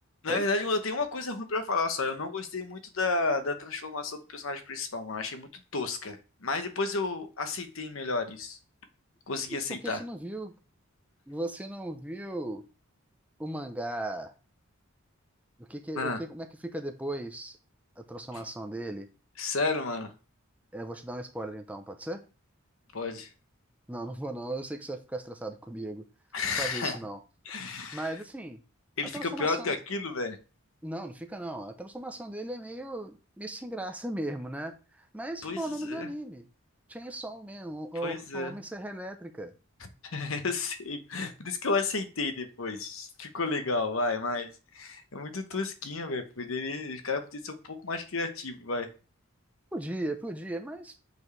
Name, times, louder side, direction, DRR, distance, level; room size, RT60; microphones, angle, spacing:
voice 1, 0.2-8.6 9.3-10.0 15.9-16.2 18.3-18.4 19.4-20.1 22.9-23.3 26.3-27.0 27.4-28.1 29.0-30.4 35.4-36.1 38.0-38.6 39.8-48.9, left 3 dB, 75° left, 1.0 m, -32 dB
voice 2, 9.5-10.5 11.3-12.6 13.4-14.3 15.6-17.6 18.0-19.1 20.7-22.2 23.9-26.0 26.6-27.2 27.9-28.6 29.1-29.7 30.8-36.5 36.9-39.5 49.7-51.0, right 1 dB, 5° right, 0.6 m, -37 dB
8.3 x 4.5 x 3.2 m
head